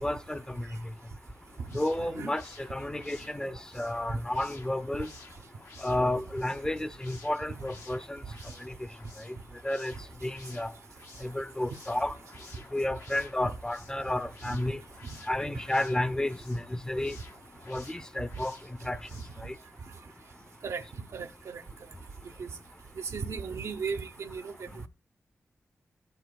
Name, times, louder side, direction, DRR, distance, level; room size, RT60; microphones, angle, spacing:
voice 1, 0.0-0.7 1.7-5.1 5.8-8.2 8.6-8.7 9.6-9.9 10.2-10.7 11.2-12.2 12.7-14.8 15.3-17.2 17.7-18.6 18.8-19.0 19.4-19.5, left 1 dB, 15° left, 0.6 m, -31 dB
sound 1, 1.4-19.5, left 4 dB, 80° left, 1.2 m, -54 dB
voice 2, 1.7-2.3 4.1-4.2 14.5-14.6 20.6-20.8 21.1-21.6 22.4-22.5 23.0-24.9, right 5 dB, 75° right, 0.7 m, -36 dB
15.0 x 8.0 x 2.2 m
cardioid pair, 60°, 5 cm